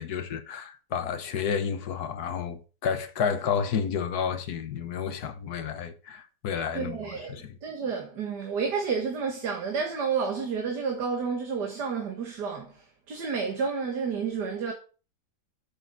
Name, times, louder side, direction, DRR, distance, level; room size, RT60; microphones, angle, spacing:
voice 1, 0.0-7.0 7.3-7.5, left 7 dB, 60° left, 1.4 m, -30 dB
voice 2, 6.7-14.7, right 5 dB, 60° right, 2.0 m, -30 dB
8.1 x 6.4 x 6.0 m
omnidirectional pair, 2.1 m